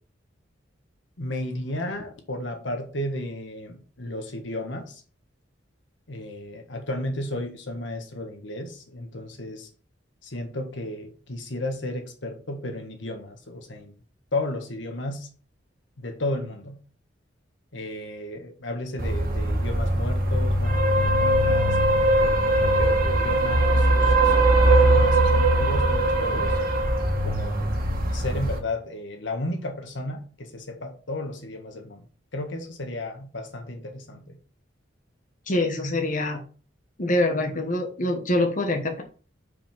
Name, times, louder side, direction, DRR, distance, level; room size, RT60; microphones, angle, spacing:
voice 1, 1.2-5.0 6.1-9.7 10.2-13.9 14.3-15.3 16.0-16.8 17.7-21.8 22.2-26.6 27.2-27.6 28.1-32.0 32.3-34.4, left 1 dB, 70° left, 1.6 m, -33 dB
sound 1, 19.0-28.6, right 1 dB, 50° right, 1.9 m, -21 dB
voice 2, 35.5-36.4 37.0-39.0, left 1 dB, 45° left, 1.2 m, -25 dB
5.6 x 5.2 x 5.5 m
head